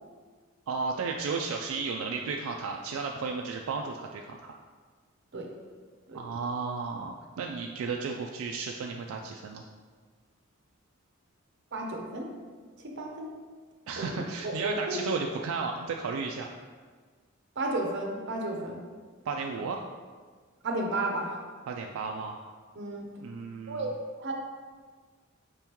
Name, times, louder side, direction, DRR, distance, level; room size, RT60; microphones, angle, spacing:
voice 1, 0.7-4.5 6.1-9.6 13.9-16.5 19.3-19.8 21.7-22.4 23.2-23.9, right 4 dB, 85° right, 2 dB, 0.3 m, -34 dB
voice 2, 11.7-12.3 12.8-13.3 14.0-15.0 17.6-18.8 20.6-21.4 22.8-23.0 23.7-24.3, right 2 dB, 60° right, 1 dB, 0.7 m, -33 dB
5.1 x 3.5 x 2.9 m, 1.5 s
head